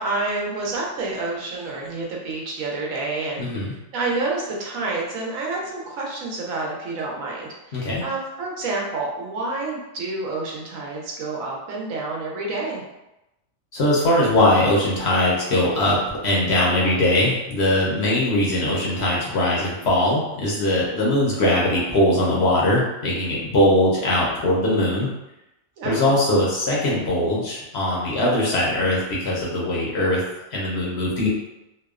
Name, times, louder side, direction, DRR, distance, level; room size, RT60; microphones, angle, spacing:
voice 1, 0.0-3.5 3.9-12.8 25.8-26.1, right 3 dB, 80° right, -2 dB, 1.0 m, -28 dB
voice 2, 3.4-3.7 7.7-8.0 13.7-25.1 25.8-30.2 30.5-31.3, left 1 dB, 65° left, -4 dB, 0.8 m, -21 dB
2.8 x 2.0 x 2.3 m, 0.93 s
omnidirectional pair, 1.4 m